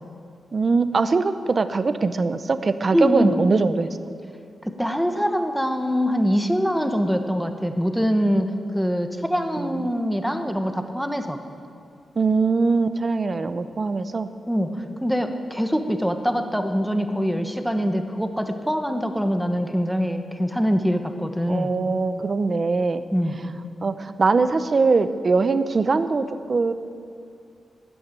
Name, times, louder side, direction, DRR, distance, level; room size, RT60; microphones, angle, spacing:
voice 1, 0.5-3.9 9.6-9.9 12.2-14.3 21.5-23.0 23.8-26.7, right 4 dB, 35° right, 11 dB, 0.7 m, -22 dB
voice 2, 2.9-3.4 4.6-11.4 14.5-21.7 23.1-23.4, equal, ahead, 6 dB, 1.0 m, -24 dB
13.0 x 12.0 x 9.0 m, 2.4 s
wide cardioid pair, 145°, 0 cm